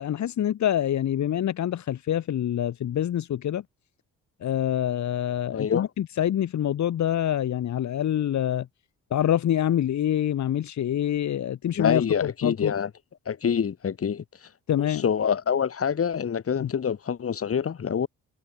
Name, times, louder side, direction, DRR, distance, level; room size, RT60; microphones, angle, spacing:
voice 1, 0.0-3.6 4.4-8.7 9.1-12.0 12.4-12.7 14.7-15.0 16.6-16.7, left 11 dB, 65° left, 4.2 m, -26 dB
voice 2, 5.5-5.9 11.8-12.9 13.3-14.2 14.8-18.1, left 7 dB, 50° left, 6.6 m, -26 dB
cardioid pair, 90°, 30 cm